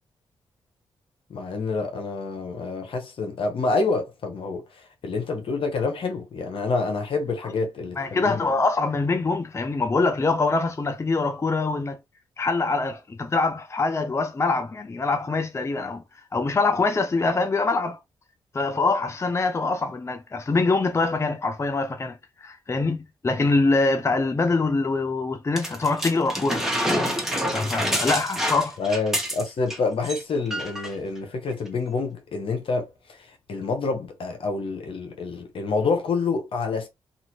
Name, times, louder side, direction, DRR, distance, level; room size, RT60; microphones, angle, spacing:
voice 1, 1.3-8.5 28.8-36.9, left 4 dB, 65° left, 1.0 m, -27 dB
voice 2, 8.0-12.0 12.4-16.0 16.3-18.0 18.5-26.6 27.5-28.8, left 3 dB, 30° left, 0.6 m, -24 dB
sound 1, 25.6-29.8 30.0-30.2 30.5-30.9 31.7-31.8, equal, 5° right, 1.2 m, -27 dB
2.7 x 2.6 x 3.0 m
supercardioid pair, 55°, 10 cm